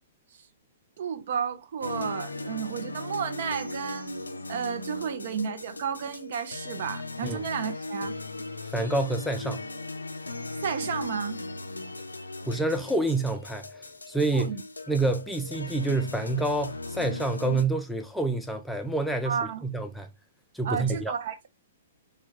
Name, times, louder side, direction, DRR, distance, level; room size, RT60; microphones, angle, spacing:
voice 1, 1.0-8.1 10.6-11.4 14.3-14.6 19.3-19.6 20.6-21.5, right 7 dB, 55° right, 0.5 m, -32 dB
sound 1, 1.8-17.6, left 2 dB, 85° left, 0.4 m, -38 dB
voice 2, 8.7-9.6 12.4-13.7 14.1-14.6 14.9-20.1 20.5-21.1, right 2 dB, ahead, 0.4 m, -27 dB
3.3 x 2.2 x 3.1 m
figure-of-eight pair, 115°, 0 cm